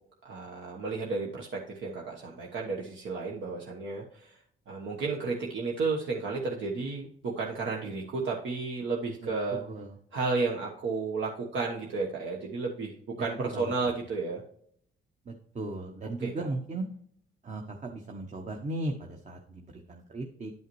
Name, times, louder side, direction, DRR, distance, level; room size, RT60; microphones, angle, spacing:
voice 1, 0.2-4.4 4.7-9.6 10.1-14.4 16.2-16.5, right 4 dB, 70° right, -1 dB, 1.2 m, -32 dB
voice 2, 9.6-9.9 13.5-14.0 15.3-16.8 17.4-20.5, right 2 dB, 35° right, 3 dB, 1.0 m, -37 dB
10.5 x 5.5 x 3.1 m, 0.65 s
cardioid pair, 90°, 20 cm